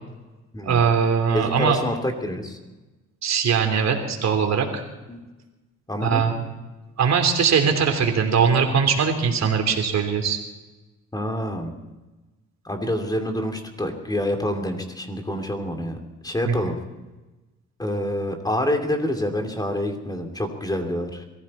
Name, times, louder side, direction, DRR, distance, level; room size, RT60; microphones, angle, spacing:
voice 1, 0.6-1.8 3.2-4.8 6.0-6.3 7.0-10.4 16.5-16.6, right 6 dB, 60° right, 4 dB, 3.2 m, -21 dB
voice 2, 1.3-2.6 5.1-5.2 5.9-6.3 11.1-11.7 12.6-16.0 16.2-16.8 17.8-21.3, left 1 dB, 15° left, 3 dB, 2.8 m, -27 dB
22.5 x 15.0 x 4.3 m, 1.1 s
cardioid pair, 90°, 30 cm